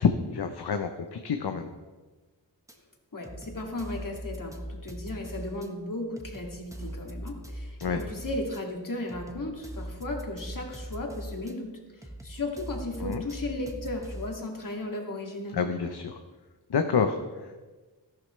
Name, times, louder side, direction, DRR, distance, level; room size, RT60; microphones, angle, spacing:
voice 1, 0.0-1.7 7.8-8.0 13.0-13.2 15.5-16.2 16.7-17.6, left 6 dB, 65° left, 6 dB, 0.9 m, -28 dB
sound 1, 2.7-2.8 3.2-5.7 6.2-8.6 9.1-11.5 12.0-14.4, equal, 5° right, 1.3 m, -40 dB
voice 2, 3.1-15.6, left 2 dB, 50° left, 1 dB, 2.5 m, -35 dB
13.5 x 11.5 x 3.3 m, 1.3 s
cardioid pair, 50°, 43 cm